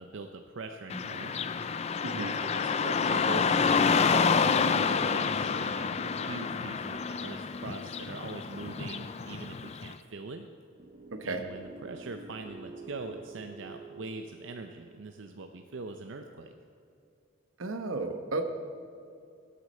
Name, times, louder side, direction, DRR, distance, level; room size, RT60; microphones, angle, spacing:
voice 1, 0.0-1.3 2.1-6.0 6.3-10.5 11.2-16.5, right 3 dB, 70° right, 5 dB, 0.6 m, -42 dB
Car passing by / Traffic noise roadway noise, 0.9-9.9, left 5 dB, 30° left, 0.4 m, -28 dB
voice 2, 2.0-2.4 11.1-11.4 17.6-18.5, right 3 dB, 90° right, 7 dB, 1.0 m, -33 dB
sound 1, 10.8-15.9, right 3 dB, 40° right, 0.9 m, -49 dB
18.5 x 8.3 x 4.3 m, 2.5 s
head